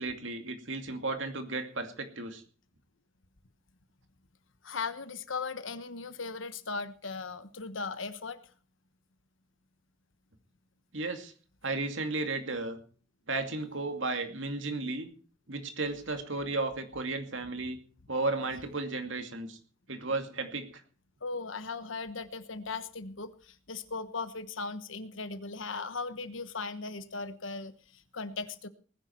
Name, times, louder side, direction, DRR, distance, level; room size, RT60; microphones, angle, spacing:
voice 1, 0.0-2.4 10.9-11.3 11.6-12.8 13.3-15.1 15.5-17.8 18.1-19.6 19.9-20.7, right 3 dB, 70° right, 6 dB, 2.4 m, -34 dB
voice 2, 4.6-8.4 21.2-28.7, left 4 dB, 80° left, 12 dB, 1.2 m, -38 dB
19.5 x 10.5 x 4.5 m, 0.40 s
head